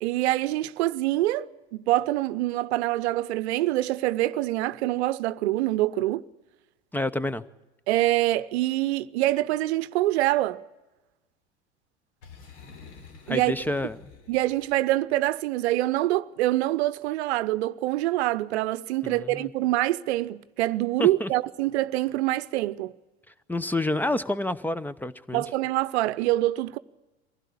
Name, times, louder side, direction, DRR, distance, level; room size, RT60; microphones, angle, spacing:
voice 1, 0.0-6.2 7.9-10.6 13.3-13.5 14.3-22.9 25.3-26.8, right 16 dB, 65° right, 0.8 m, -25 dB
voice 2, 6.9-7.4 13.3-14.1 19.0-19.5 21.0-21.3 23.5-25.4, left 1 dB, 5° left, 0.8 m, -28 dB
Boom, 12.2-14.9, left 5 dB, 65° left, 3.4 m, -48 dB
23.5 x 16.0 x 8.5 m
hypercardioid pair, 85°, 35 cm